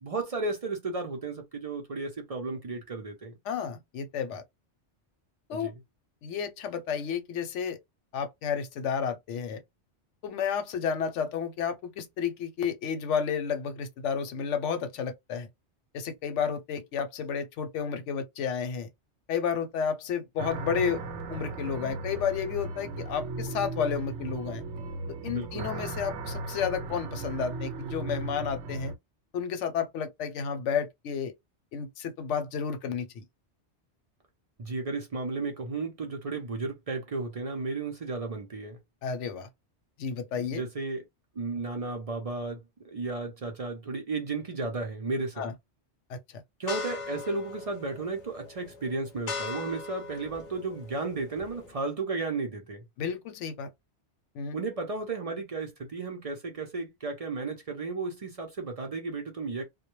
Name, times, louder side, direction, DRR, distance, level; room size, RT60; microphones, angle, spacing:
voice 1, 0.0-3.3 5.5-5.7 25.3-25.7 34.6-38.8 40.4-41.0 41.4-45.5 46.6-52.8 54.5-59.6, right 3 dB, 45° right, 0.5 m, -34 dB
voice 2, 3.4-4.4 5.5-5.7 6.2-7.8 8.1-9.6 10.2-15.5 15.9-18.9 19.3-21.0 21.3-24.6 25.2-28.9 29.3-31.3 31.7-33.2 39.0-39.5 40.0-40.6 45.4-45.5 46.1-46.4 53.0-53.7 54.3-54.6, left 7 dB, 85° left, 0.9 m, -31 dB
sound 1, 20.4-28.9, right 3 dB, 85° right, 0.9 m, -37 dB
sound 2, 46.7-51.8, left 4 dB, 50° left, 0.6 m, -40 dB
2.1 x 2.1 x 2.9 m
omnidirectional pair, 1.2 m